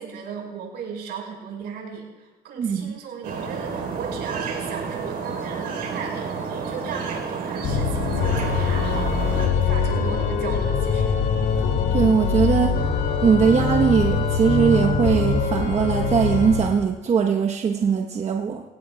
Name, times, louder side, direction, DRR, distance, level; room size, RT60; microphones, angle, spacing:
voice 1, 0.0-11.2, right 6 dB, 75° right, 5.3 m, -36 dB
voice 2, 2.6-3.0 11.9-12.8 13.2-18.6, right 6 dB, 40° right, 1.1 m, -20 dB
sound 1, 3.2-9.5, right 5 dB, 60° right, 3.9 m, -30 dB
Organ, 7.6-16.8, left 5 dB, 65° left, 2.2 m, -23 dB
24.0 x 17.5 x 2.3 m
cardioid pair, 110°, 17 cm